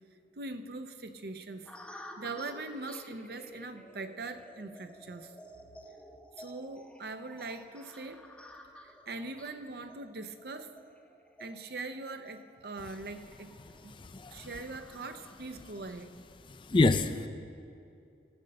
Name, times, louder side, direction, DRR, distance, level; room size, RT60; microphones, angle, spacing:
voice 1, 0.4-5.3 6.4-8.3 8.8-10.7 11.4-13.5 13.8-13.9 14.3-16.2, right 3 dB, 60° right, 9 dB, 0.6 m, -42 dB
sound 1, 1.7-16.0, equal, 5° left, 0.8 m, -53 dB
voice 2, 14.0-14.5 16.6-17.3, left 2 dB, 30° left, 11 dB, 0.4 m, -26 dB
14.5 x 6.6 x 7.6 m, 2.5 s
head